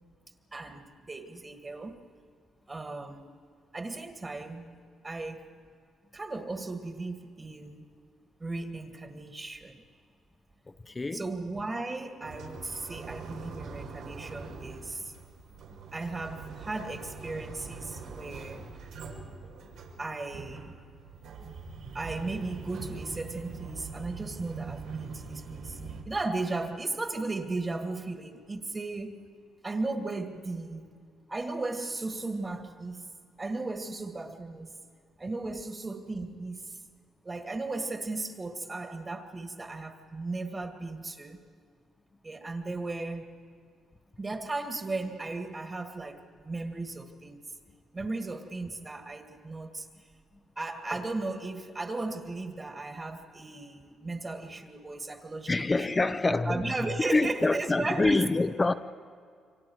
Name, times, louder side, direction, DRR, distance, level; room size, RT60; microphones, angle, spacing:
voice 1, 0.5-2.1 2.7-3.4 3.7-5.5 6.1-7.9 8.4-9.8 11.1-15.1 15.9-18.7 20.0-20.8 21.9-29.2 29.6-31.0 31.3-33.1 33.4-34.7 35.2-36.8 37.2-41.4 42.2-43.4 44.2-47.5 47.9-49.9 50.6-56.0 56.3-58.2, right 3 dB, 25° right, 2.0 m, -36 dB
voice 2, 10.7-11.2 55.5-56.7 57.1-58.7, left 3 dB, 25° left, 0.8 m, -26 dB
sound 1, 12.2-26.0, right 4 dB, 85° right, 4.9 m, -43 dB
29.5 x 24.5 x 4.7 m
cardioid pair, 90°, 0 cm